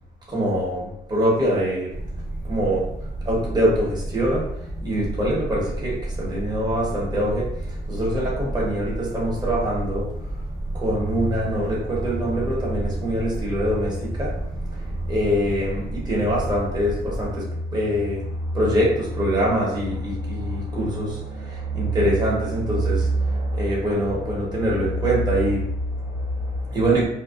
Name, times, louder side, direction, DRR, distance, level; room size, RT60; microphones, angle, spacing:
voice 1, 0.3-1.9 2.4-2.9 3.2-4.5 4.8-10.1 10.7-27.1, equal, 20° right, -5 dB, 0.9 m, -24 dB
sound 1, 1.9-17.3, right 1 dB, 30° left, 0.6 m, -31 dB
2.5 x 2.1 x 2.3 m, 0.75 s
cardioid pair, 90°, 20 cm